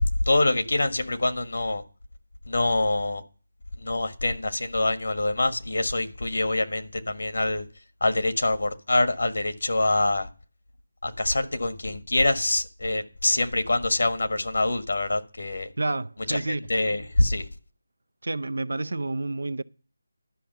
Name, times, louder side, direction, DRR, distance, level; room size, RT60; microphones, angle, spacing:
voice 1, 0.0-1.8 2.5-3.2 3.8-7.7 8.0-10.3 11.0-15.7 16.3-16.4 16.7-17.4, left 2 dB, 65° left, 1.5 m, -25 dB
voice 2, 15.8-16.7 18.2-19.6, right 2 dB, 65° right, 0.6 m, -29 dB
11.5 x 6.1 x 6.8 m
figure-of-eight pair, 180°, 0 cm